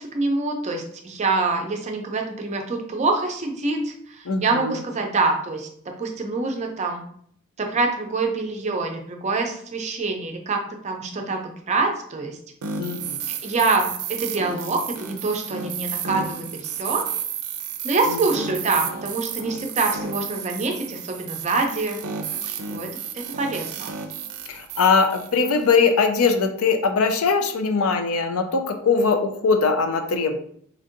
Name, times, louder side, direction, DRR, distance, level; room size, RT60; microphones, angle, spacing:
voice 1, 0.0-7.0 7.6-12.4 13.4-17.1 17.8-22.0 22.4-23.9, right 3 dB, 30° right, 3 dB, 0.5 m, -25 dB
voice 2, 4.3-4.8 12.8-13.2 18.1-18.2 24.5-30.4, left 4 dB, 80° left, 7 dB, 0.5 m, -21 dB
sound 1, 12.6-25.7, right 7 dB, 90° right, 0.4 m, -32 dB
4.3 x 2.6 x 2.5 m, 0.63 s
head